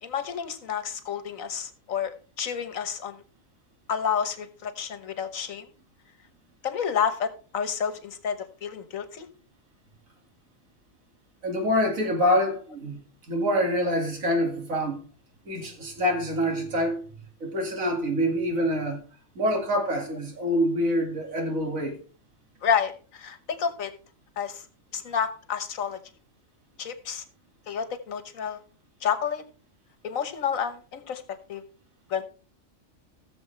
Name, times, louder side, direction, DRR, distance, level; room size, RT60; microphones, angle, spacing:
voice 1, 0.0-3.2 3.9-5.6 6.6-8.4 8.6-9.3 22.6-23.9 24.4-24.6 24.9-26.0 26.8-27.2 27.7-28.6 29.0-29.4 30.0-31.2 31.5-31.6 32.1-32.2, left 7 dB, 85° left, 1.6 m, -29 dB
voice 2, 11.4-13.0 13.3-15.0 15.5-17.1 17.4-19.0 19.4-22.0, equal, 85° right, 2.6 m, -26 dB
17.0 x 7.0 x 3.3 m
omnidirectional pair, 1.4 m